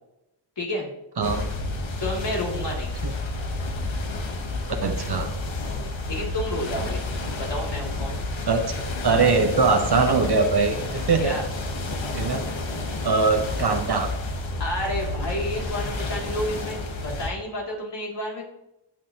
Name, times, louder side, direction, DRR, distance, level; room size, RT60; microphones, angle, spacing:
voice 1, 0.6-0.9 2.0-2.9 6.1-7.0 7.4-8.2 11.2-11.4 14.6-18.4, left 1 dB, 65° left, -3 dB, 2.8 m, -30 dB
sound 1, 1.2-17.3, left 2 dB, 80° left, 1.2 m, -30 dB
voice 2, 4.8-5.3 8.5-8.7 9.0-11.4 12.1-12.4 13.0-14.1, right 4 dB, 60° right, 5 dB, 1.0 m, -22 dB
15.0 x 6.2 x 2.9 m, 0.91 s
cardioid pair, 55°, 45 cm